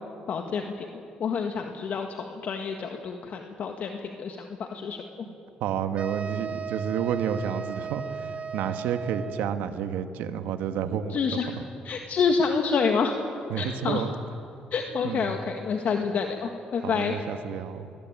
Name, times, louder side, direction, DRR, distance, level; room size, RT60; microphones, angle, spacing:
voice 1, 0.3-0.9 1.2-5.0 11.1-11.6 11.8-13.1 13.6-14.1 14.7-17.2, left 5 dB, 60° left, 4 dB, 1.7 m, -28 dB
voice 2, 5.6-11.6 13.5-14.1 15.0-15.4 16.8-17.9, right 8 dB, 85° right, 9 dB, 1.4 m, -30 dB
sound 1, 6.0-9.6, right 6 dB, 40° right, 1.5 m, -36 dB
23.5 x 20.0 x 9.0 m, 2.8 s
supercardioid pair, 70°, 3 cm